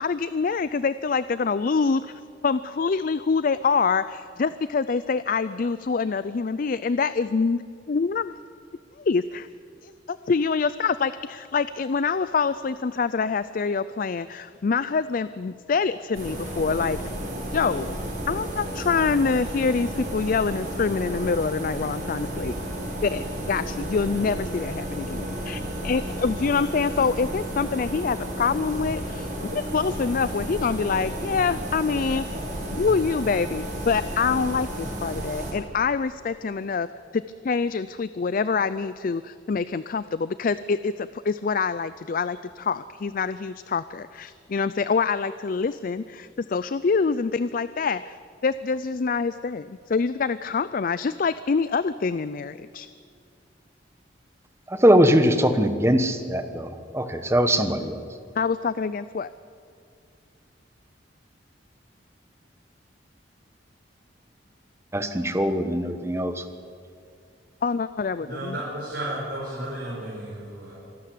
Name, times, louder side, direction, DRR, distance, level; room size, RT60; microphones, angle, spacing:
voice 1, 0.0-7.6 7.9-8.4 9.0-9.5 9.8-17.0 17.5-17.9 18.2-22.6 23.0-32.3 32.7-36.9 37.1-48.2 48.4-52.9 58.4-59.3 67.6-68.6, left 5 dB, 50° left, 15 dB, 0.4 m, -25 dB
sound 1, 16.1-35.5, equal, 45° right, 5.5 m, -32 dB
voice 2, 54.7-58.0 64.9-66.4, equal, 15° right, 8 dB, 1.2 m, -21 dB
voice 3, 68.2-70.7, right 1 dB, 70° right, -6 dB, 5.6 m, -33 dB
25.5 x 12.5 x 8.5 m, 2.3 s
head